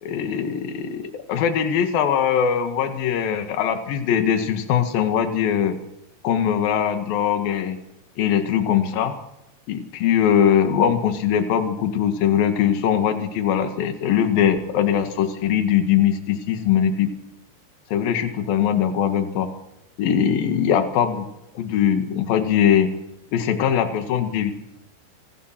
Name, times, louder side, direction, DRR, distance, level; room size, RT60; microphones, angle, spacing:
voice 1, 0.0-5.8 6.2-7.8 8.2-9.2 9.7-17.1 17.9-19.5 20.0-21.3 21.5-22.9 23.3-24.5, left 9 dB, 60° left, 7 dB, 3.2 m, -21 dB
26.0 x 17.5 x 6.0 m, 0.88 s
omnidirectional pair, 5.5 m